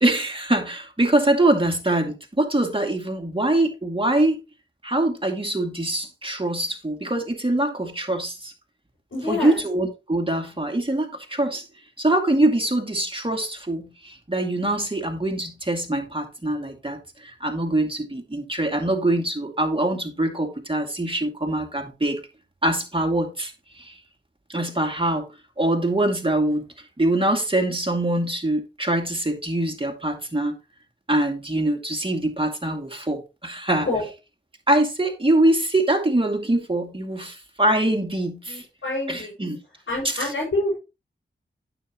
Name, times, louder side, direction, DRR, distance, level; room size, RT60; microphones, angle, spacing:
voice 1, 0.0-4.4 4.8-8.5 9.3-11.7 12.0-22.2 22.6-23.5 23.8-23.9 24.5-25.3 25.6-26.6 27.0-30.6 31.1-33.9 34.7-38.6 39.1-39.6, right 1 dB, 25° right, 2.3 m, -23 dB
voice 2, 9.1-9.6 33.8-34.1 38.5-39.3 39.9-40.7, left 2 dB, 90° left, 6.1 m, -27 dB
9.2 x 7.6 x 3.0 m
cardioid pair, 45°, 20 cm